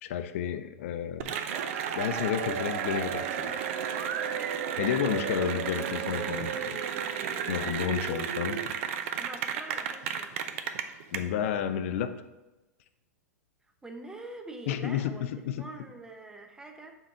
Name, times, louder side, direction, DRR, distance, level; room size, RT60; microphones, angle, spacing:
voice 1, 0.0-1.3 2.0-3.6 4.8-6.8 7.5-8.6 11.1-12.1 14.7-15.7, left 9 dB, 55° left, 10 dB, 0.5 m, -31 dB
Cheering / Applause, 1.2-11.2, right 8 dB, 50° right, 0.5 m, -32 dB
voice 2, 9.2-10.3 13.8-15.3 15.6-17.0, right 2 dB, 5° right, 4 dB, 0.7 m, -44 dB
7.2 x 3.9 x 4.4 m, 1.1 s
figure-of-eight pair, 100°, 9 cm